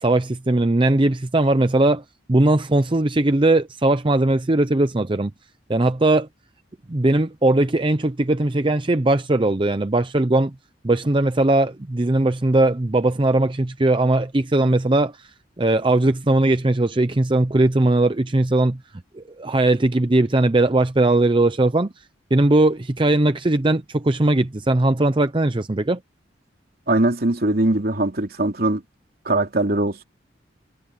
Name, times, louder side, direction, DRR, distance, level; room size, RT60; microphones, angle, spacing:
voice 1, 0.0-2.0 2.3-5.3 5.7-6.3 6.9-10.5 10.8-15.3 15.6-18.8 19.1-21.9 22.3-26.0, right 2 dB, 25° right, 0.7 m, -19 dB
voice 2, 26.9-28.8 29.2-30.0, right 2 dB, 55° right, 3.1 m, -21 dB
head